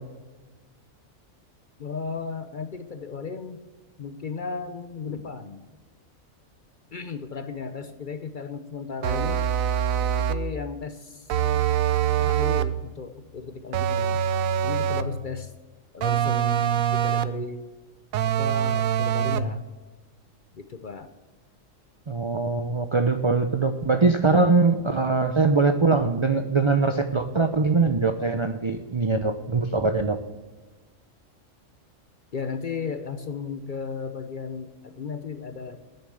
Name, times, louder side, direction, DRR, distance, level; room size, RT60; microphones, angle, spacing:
voice 1, 1.8-3.6 4.0-5.7 6.9-9.5 10.1-11.3 12.2-14.2 14.6-15.5 15.9-17.7 18.2-19.6 20.5-21.1 32.3-35.8, left 5 dB, 50° left, 9 dB, 0.7 m, -35 dB
sound 1, 9.0-10.5 11.3-12.8 13.7-15.2 16.0-17.4 18.1-19.6, right 9 dB, 85° right, 1.1 m, -24 dB
voice 2, 22.1-30.2, right 3 dB, 40° right, 8 dB, 0.4 m, -22 dB
9.6 x 7.1 x 7.8 m, 1.3 s
omnidirectional pair, 1.4 m